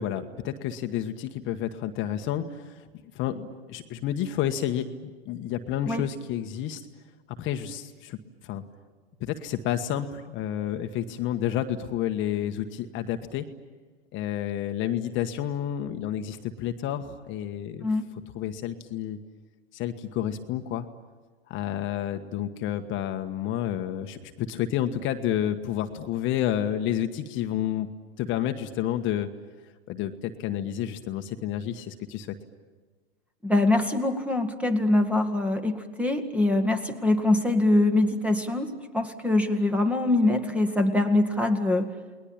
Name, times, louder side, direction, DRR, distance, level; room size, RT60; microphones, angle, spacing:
voice 1, 0.0-2.9 3.1-6.9 7.4-8.2 8.4-8.6 9.2-13.5 14.1-17.9 18.3-19.2 19.7-20.9 21.5-27.9 28.2-29.3 29.9-32.3, left 10 dB, 40° left, 7 dB, 1.4 m, -30 dB
voice 2, 33.4-41.9, left 2 dB, 5° right, 8 dB, 1.9 m, -23 dB
29.5 x 20.5 x 8.8 m, 1.4 s
hypercardioid pair, 120°, 32 cm